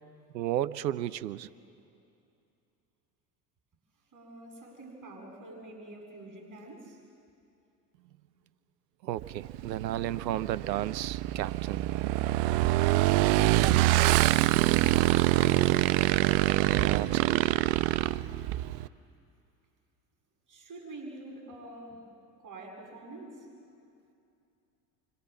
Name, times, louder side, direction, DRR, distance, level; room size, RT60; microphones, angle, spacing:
voice 1, 0.3-1.5 9.0-12.1 16.6-17.6, right 13 dB, 85° right, 16 dB, 0.8 m, -33 dB
voice 2, 4.1-7.0 20.5-22.0 22.4-23.5, right 2 dB, 40° right, 1 dB, 7.4 m, -47 dB
Motorcycle / Engine, 9.2-18.9, right 17 dB, 55° right, 0.8 m, -25 dB
30.0 x 25.5 x 7.4 m, 2.6 s
hypercardioid pair, 70°, 49 cm